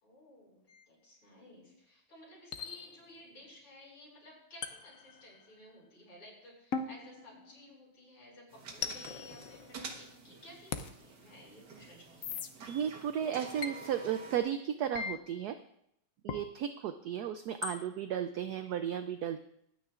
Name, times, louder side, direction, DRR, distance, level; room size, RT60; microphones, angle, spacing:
voice 1, 0.0-12.7, left 1 dB, 90° left, -5 dB, 6.4 m, -55 dB
sound 1, 0.7-0.8 2.5-3.3 4.6-5.7 6.7-8.0 8.8-10.2 10.7-10.9 12.2-12.5 13.6-13.8 14.9-15.1 16.3-16.5 17.6-17.8, left 6 dB, 60° left, 0.9 m, -40 dB
sound 2, 8.5-14.4, right 4 dB, 60° right, 1.9 m, -49 dB
voice 2, 12.7-15.6 16.2-19.4, right 9 dB, 75° right, 10 dB, 0.9 m, -34 dB
23.0 x 9.4 x 2.5 m, 0.76 s
omnidirectional pair, 2.2 m